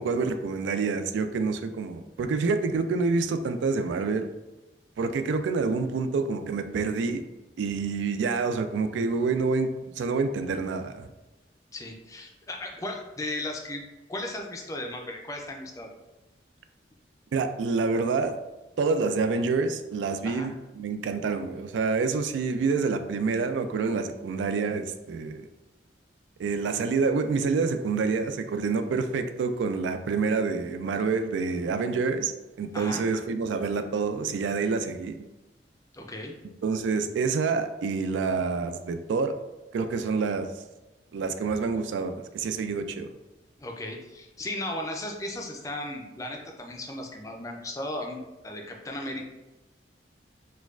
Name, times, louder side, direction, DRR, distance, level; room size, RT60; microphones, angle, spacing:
voice 1, 0.0-4.3 5.0-7.2 7.6-9.7 10.0-11.1 17.3-18.4 18.8-25.5 26.4-32.3 32.6-35.2 36.6-39.3 39.7-40.5 41.1-43.1, right 4 dB, 80° right, 8 dB, 0.3 m, -27 dB
voice 2, 11.7-13.8 14.1-15.9 20.2-20.5 32.7-33.0 35.9-36.3 43.6-49.2, left 1 dB, 20° left, 2 dB, 0.4 m, -36 dB
4.3 x 2.3 x 2.3 m, 1.1 s
head